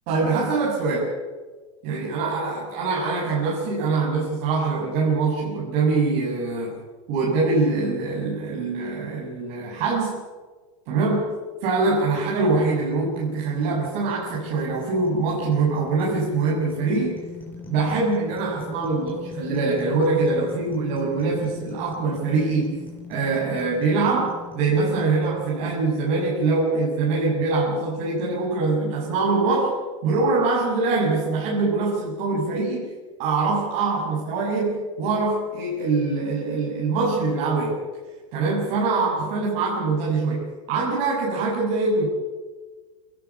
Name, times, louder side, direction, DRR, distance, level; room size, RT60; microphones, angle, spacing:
voice 1, 0.1-1.2 1.8-6.7 7.1-10.2 10.8-11.4 11.6-17.2 17.7-22.8 23.1-29.7 30.0-32.9 33.2-37.8 38.3-42.1, right 3 dB, 55° right, -4 dB, 6.9 m, -23 dB
sound 1, 12.0-27.2, left 3 dB, 10° left, 5.7 m, -41 dB
26.5 x 17.5 x 7.2 m, 1.4 s
supercardioid pair, 145°, 16 cm